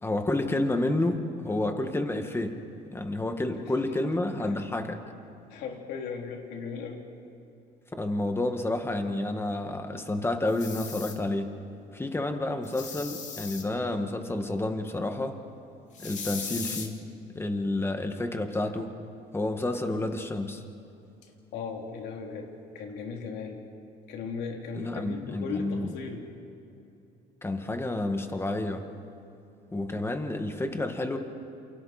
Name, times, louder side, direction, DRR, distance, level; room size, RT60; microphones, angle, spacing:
voice 1, 0.0-2.6 2.9-5.0 8.0-11.5 11.9-15.4 16.0-17.0 17.3-18.9 19.3-20.6 24.8-25.9 27.4-28.8 29.7-31.2, left 2 dB, 15° left, 5 dB, 2.0 m, -30 dB
voice 2, 5.5-7.1 21.5-23.6 24.1-26.3, left 5 dB, 85° left, 1 dB, 3.3 m, -37 dB
sound 1, 10.5-11.1 12.6-13.6 15.9-16.9, left 6 dB, 45° left, 2.8 m, -38 dB
29.0 x 28.5 x 4.4 m, 2.7 s
cardioid pair, 110°, 17 cm